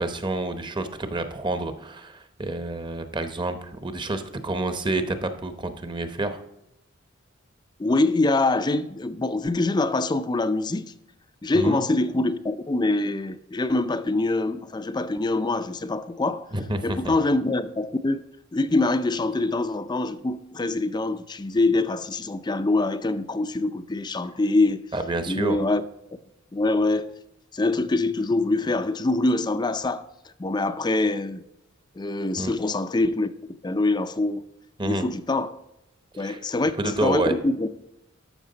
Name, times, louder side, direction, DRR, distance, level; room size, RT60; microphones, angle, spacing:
voice 1, 0.0-6.4 11.5-11.8 16.5-17.1 24.9-25.6 32.4-32.5 34.8-35.1 36.2-36.4 36.8-37.3, right 2 dB, 25° right, 0.9 m, -28 dB
voice 2, 7.8-10.9 11.4-16.5 16.8-18.2 18.5-24.8 25.3-25.8 26.1-26.2 26.5-27.1 27.5-30.1 30.4-31.4 32.0-33.3 33.6-34.5 34.8-35.6 36.2-37.7, left 2 dB, 20° left, 0.4 m, -24 dB
13.0 x 5.8 x 3.9 m
head